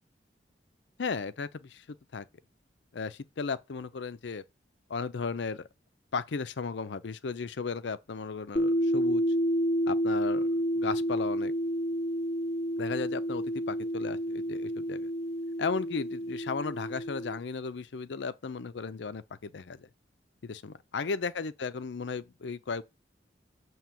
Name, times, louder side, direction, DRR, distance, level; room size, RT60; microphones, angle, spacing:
voice 1, 1.0-1.8 2.1-2.3 2.9-4.4 4.9-5.7 6.1-9.2 9.9-11.5 12.8-15.1 15.6-19.9 20.4-22.8, left 4 dB, 80° left, 0.5 m, -35 dB
sound 1, 8.6-17.4, equal, 35° left, 0.7 m, -30 dB
7.5 x 3.0 x 5.7 m
head